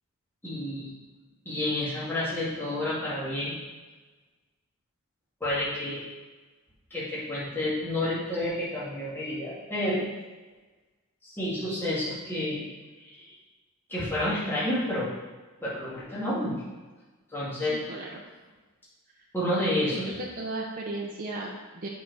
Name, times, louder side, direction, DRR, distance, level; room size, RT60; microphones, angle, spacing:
voice 1, 0.4-0.9 1.5-3.5 5.4-6.0 6.9-10.0 11.2-12.7 13.0-13.4 13.9-15.1 15.6-16.5 17.3-17.8 19.3-20.2, left 1 dB, 10° left, -10 dB, 2.2 m, -30 dB
voice 2, 17.7-18.2 19.9-21.9, right 2 dB, 40° right, -3 dB, 0.7 m, -36 dB
8.3 x 4.1 x 4.8 m, 1.3 s
head